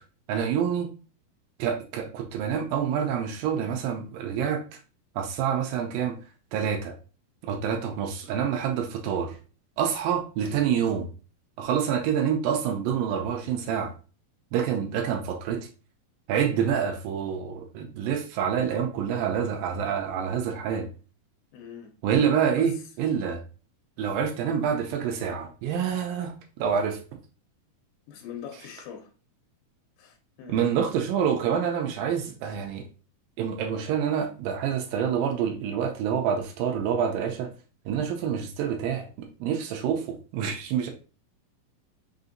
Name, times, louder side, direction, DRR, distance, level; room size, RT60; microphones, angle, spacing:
voice 1, 0.3-0.9 1.6-4.8 5.2-6.2 6.5-6.9 7.4-9.4 9.8-11.1 11.6-13.9 14.5-15.7 16.3-20.9 22.0-22.7 23.0-23.4 24.0-27.0 30.5-32.8 33.4-37.5 37.9-40.0 40.3-40.9, right 8 dB, 80° right, 2.1 m, -27 dB
voice 2, 21.5-21.9 22.6-22.8 28.1-29.1 30.0-30.7, left 8 dB, 80° left, 2.5 m, -42 dB
5.6 x 2.6 x 2.5 m
omnidirectional pair, 4.3 m